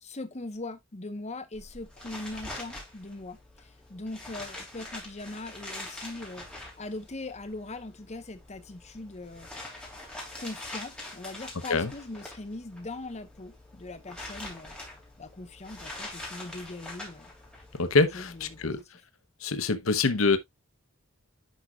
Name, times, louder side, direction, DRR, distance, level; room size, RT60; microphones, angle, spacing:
voice 1, 0.0-9.5 10.4-14.8 15.2-17.3 18.1-19.0, left 2 dB, 35° left, 1.0 m, -41 dB
sound 1, 1.5-18.8, left 1 dB, 5° left, 3.1 m, -44 dB
voice 2, 17.8-18.8 19.4-20.4, left 3 dB, 90° left, 0.9 m, -25 dB
10.5 x 4.9 x 2.3 m
head